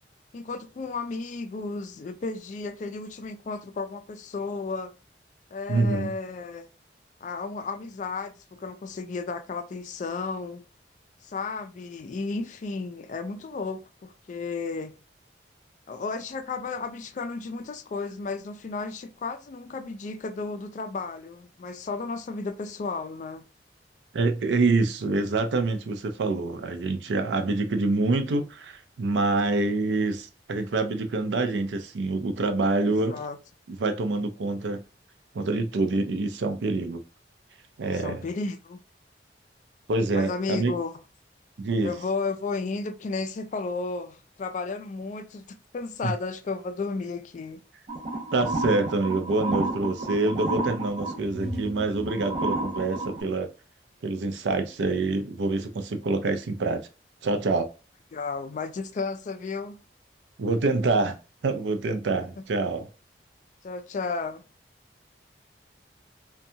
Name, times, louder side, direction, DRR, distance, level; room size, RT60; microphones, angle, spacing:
voice 1, 0.3-4.9 5.5-6.7 7.2-10.6 11.2-14.9 15.9-23.4 33.1-33.4 37.9-38.8 40.1-41.0 41.8-47.6 58.1-59.8 63.6-64.4, left 4 dB, 45° left, 0.3 m, -33 dB
voice 2, 5.7-6.1 24.1-33.2 33.7-34.8 35.3-37.0 37.8-38.2 39.9-40.7 41.6-41.9 46.0-46.1 48.3-53.5 54.0-56.9 57.2-57.7 60.4-61.2 61.4-62.9, right 3 dB, 85° right, 0.4 m, -26 dB
sound 1, 47.9-53.2, right 2 dB, 40° right, 0.7 m, -31 dB
2.6 x 2.2 x 2.6 m
head